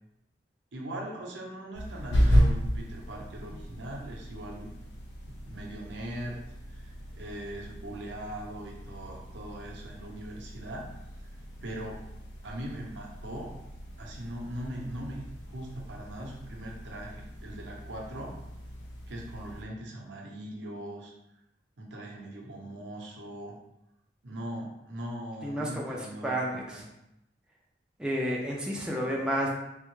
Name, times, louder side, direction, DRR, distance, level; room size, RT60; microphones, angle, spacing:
voice 1, 0.7-4.7 5.2-6.4 6.7-10.8 11.6-12.0 12.4-13.5 14.0-15.2 15.5-18.3 19.1-21.1 21.8-23.6 24.2-26.8, right 1 dB, 90° right, -1 dB, 0.7 m, -40 dB
sound 1, 1.7-19.6, equal, 80° left, 0.6 m, -34 dB
voice 2, 25.4-26.8 28.0-29.5, equal, 5° right, -3 dB, 0.3 m, -31 dB
3.3 x 2.1 x 3.1 m, 0.87 s
head